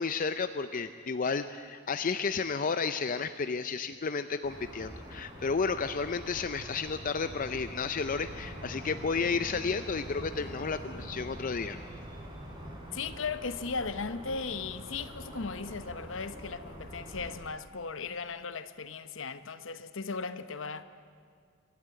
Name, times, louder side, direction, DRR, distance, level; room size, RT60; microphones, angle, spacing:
voice 1, 0.0-11.8, left 5 dB, 40° left, 0.5 m, -32 dB
sound 1, 4.4-17.4, equal, 20° right, 3.8 m, -44 dB
voice 2, 12.9-20.8, left 4 dB, 65° left, 0.9 m, -37 dB
25.5 x 12.5 x 8.9 m
head